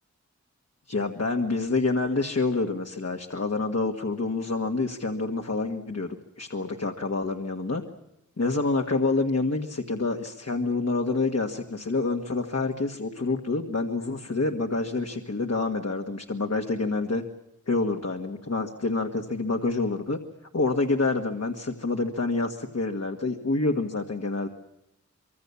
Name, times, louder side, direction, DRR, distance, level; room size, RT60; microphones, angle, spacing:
voice 1, 0.9-7.8 8.4-17.2 17.7-20.2 20.5-24.5, left 3 dB, 60° left, 3 dB, 1.8 m, -27 dB
25.5 x 24.5 x 7.1 m, 0.85 s
wide cardioid pair, 70°, 29 cm